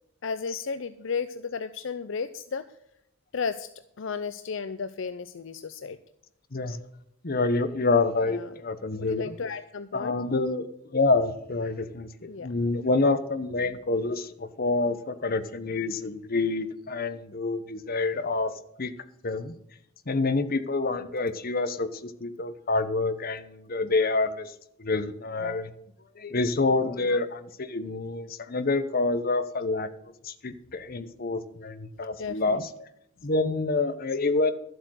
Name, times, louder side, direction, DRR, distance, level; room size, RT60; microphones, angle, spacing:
voice 1, 0.2-2.6 3.3-3.7 4.0-6.0 8.3-8.5 9.0-10.2 12.3-12.5 32.2-32.6, left 5 dB, 65° left, 12 dB, 0.5 m, -33 dB
voice 2, 7.2-9.3 9.9-10.6 10.9-12.1 12.4-18.5 18.8-18.9 19.2-19.5 20.1-24.5 24.8-25.7 26.2-29.9 30.2-32.7 33.2-34.5, left 3 dB, 45° left, 11 dB, 0.9 m, -27 dB
12.5 x 7.9 x 6.4 m, 0.80 s
head